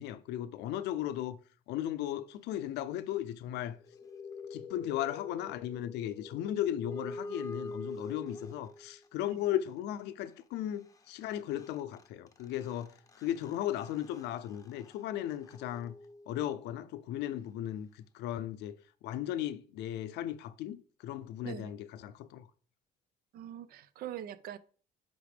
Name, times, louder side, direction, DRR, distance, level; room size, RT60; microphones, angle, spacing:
voice 1, 0.0-1.4 1.7-3.8 4.5-12.9 13.2-15.9 16.3-18.8 19.0-22.5, left 12 dB, 85° left, 0.6 m, -36 dB
sound 1, 3.7-9.1 11.0-11.1 11.2-16.7, left 2 dB, 20° left, 0.7 m, -46 dB
voice 2, 23.3-24.6, right 11 dB, 65° right, 0.5 m, -43 dB
9.5 x 3.7 x 3.5 m
cardioid pair, 110°, 17 cm